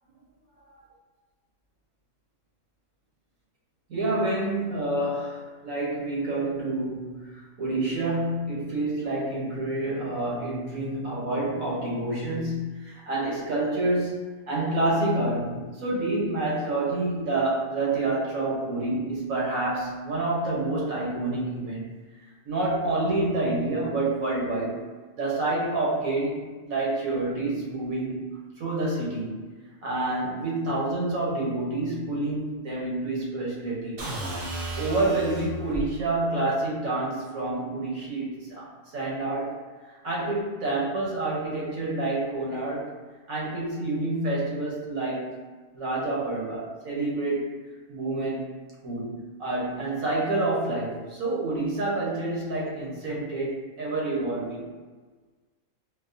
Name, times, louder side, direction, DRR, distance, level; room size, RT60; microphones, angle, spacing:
voice 1, 3.9-14.1 14.5-21.9 22.2-24.9 25.2-26.4 26.6-29.4 29.8-34.0 34.8-39.6 39.8-42.9 43.3-45.4 45.7-47.5 47.9-48.5 48.8-54.7, right 2 dB, 85° right, -4 dB, 1.4 m, -28 dB
sound 1, 34.0-35.9, right 2 dB, 50° right, 0.6 m, -33 dB
4.6 x 2.1 x 2.6 m, 1.4 s
omnidirectional pair, 1.4 m